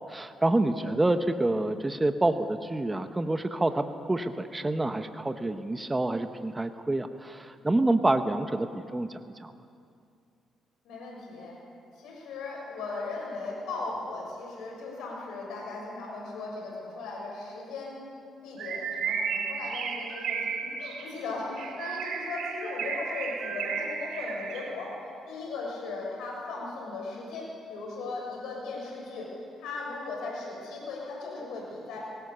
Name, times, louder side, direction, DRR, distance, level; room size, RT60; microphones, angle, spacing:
voice 1, 0.1-9.5, right 2 dB, 15° right, 8 dB, 1.0 m, -27 dB
voice 2, 10.8-11.6 12.0-18.1 18.4-24.9 25.3-29.3 29.6-32.0, left 3 dB, 85° left, -2 dB, 6.5 m, -37 dB
Bird, 18.6-24.9, right 6 dB, 80° right, 2.4 m, -34 dB
22.5 x 18.5 x 6.9 m, 2.4 s
cardioid pair, 90°, 0 cm